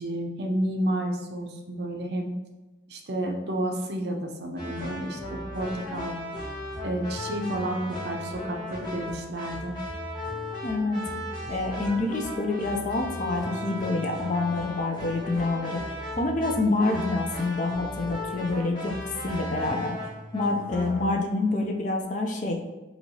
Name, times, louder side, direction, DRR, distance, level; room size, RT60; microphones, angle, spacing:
voice 1, 0.0-2.3 2.9-6.1 6.8-9.8, right 1 dB, 60° right, 2 dB, 0.6 m, -31 dB
sound 1, 4.6-21.1, left 1 dB, 25° left, 1.2 m, -36 dB
voice 2, 10.6-11.0 11.5-15.8 16.2-18.9 19.2-19.9 20.3-22.6, left 2 dB, 40° left, 2 dB, 0.4 m, -27 dB
4.4 x 2.8 x 2.8 m, 1.2 s
head